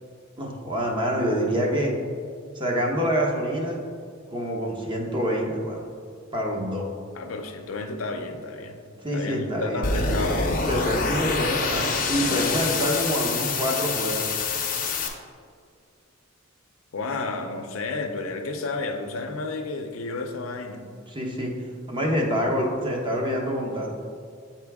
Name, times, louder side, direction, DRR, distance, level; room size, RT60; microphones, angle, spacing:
voice 1, 0.4-2.0 2.5-3.8 4.3-5.8 6.3-6.9 9.0-10.1 10.7-14.3 21.1-21.5 21.9-23.9, equal, 25° right, -1 dB, 0.9 m, -26 dB
voice 2, 7.1-8.8 9.1-10.6 16.9-20.9, left 3 dB, 80° left, 5 dB, 0.6 m, -32 dB
sound 1, 9.8-15.1, left 4 dB, 45° left, 0.8 m, -26 dB
8.0 x 4.5 x 3.5 m, 2.2 s
head